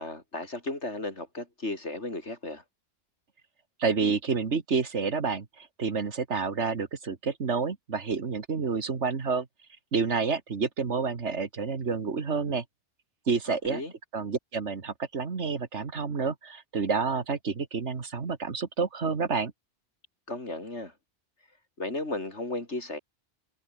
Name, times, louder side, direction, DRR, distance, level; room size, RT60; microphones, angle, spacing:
voice 1, 0.0-2.6 13.5-13.9 20.3-20.9 21.8-23.0, left 2 dB, 75° left, 5.0 m, -35 dB
voice 2, 3.8-9.5 9.9-12.6 13.3-13.8 14.1-19.5, right 5 dB, 75° right, 2.1 m, -29 dB
omnidirectional pair, 1.2 m